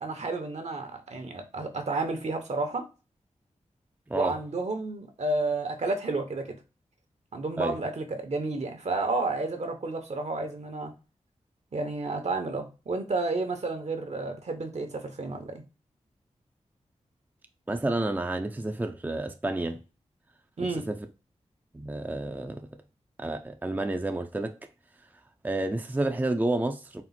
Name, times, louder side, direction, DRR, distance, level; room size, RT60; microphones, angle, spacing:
voice 1, 0.0-2.8 4.1-6.5 7.3-10.9 11.7-15.6 20.6-20.9, right 3 dB, 60° right, 1.0 m, -31 dB
voice 2, 4.1-4.4 7.6-7.8 17.7-19.8 20.6-21.1 21.7-22.6 23.2-24.6 25.4-27.0, right 2 dB, 15° right, 0.5 m, -30 dB
4.4 x 2.0 x 4.0 m
cardioid pair, 45°, 13 cm